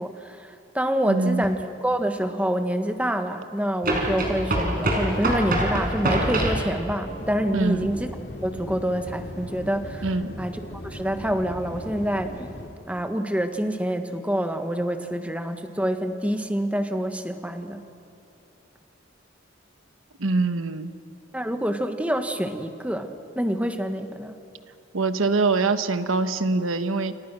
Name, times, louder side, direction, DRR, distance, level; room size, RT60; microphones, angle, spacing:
voice 1, 0.0-8.1 8.4-12.5 12.9-17.9 21.3-24.3, equal, 5° right, 7 dB, 1.4 m, -27 dB
voice 2, 1.0-1.5 7.5-7.9 10.0-10.3 20.2-20.9 24.9-27.1, right 3 dB, 85° right, 10 dB, 1.1 m, -24 dB
sound 1, 1.4-1.5 3.8-6.7, right 1 dB, 45° right, 5.1 m, -24 dB
sound 2, 7.0-12.7, left 1 dB, 55° left, 3.1 m, -38 dB
28.5 x 28.0 x 6.2 m, 2.9 s
head